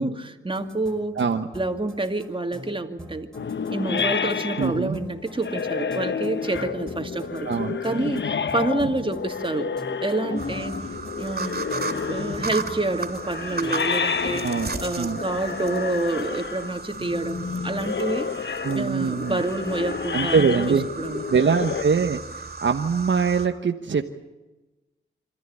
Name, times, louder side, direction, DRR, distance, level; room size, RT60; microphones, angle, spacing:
voice 1, 0.0-1.2 1.5-3.3 3.7-7.5 7.8-9.7 10.0-10.8 11.2-18.3 18.7-20.4 20.7-21.3, right 2 dB, 25° right, 6 dB, 2.5 m, -28 dB
sound 1, 0.5-15.1, equal, 5° left, 5.3 m, -44 dB
voice 2, 1.2-1.5 4.6-5.0 7.4-7.8 14.4-14.7 15.0-15.2 18.6-19.4 20.1-20.9 21.3-24.1, right 5 dB, 70° right, 5 dB, 1.2 m, -23 dB
sound 2, 3.3-21.8, left 6 dB, 65° left, 0.9 m, -30 dB
sound 3, 10.4-23.5, right 4 dB, 50° right, 3.0 m, -35 dB
26.0 x 13.5 x 9.9 m, 1.1 s
cardioid pair, 60°, 20 cm